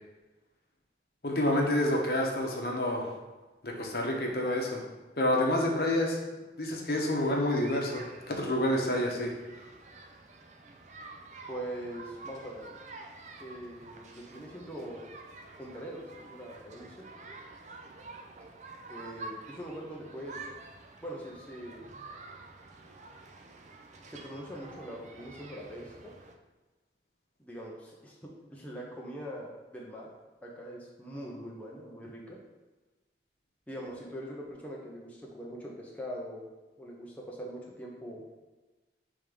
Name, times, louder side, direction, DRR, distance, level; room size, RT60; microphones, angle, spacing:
voice 1, 1.2-3.2 3.6-4.8 5.2-6.2 6.6-9.3, left 1 dB, 60° left, 0 dB, 1.0 m, -28 dB
sound 1, 7.5-26.3, right 3 dB, 40° right, 0.5 m, -49 dB
voice 2, 11.5-12.7 13.4-15.1 15.6-17.0 18.9-20.4 21.0-21.8 24.1-26.1 27.4-30.1 30.4-32.4 33.7-36.5 36.8-38.2, equal, 10° left, -4 dB, 0.7 m, -42 dB
5.2 x 3.5 x 5.2 m, 1.2 s
head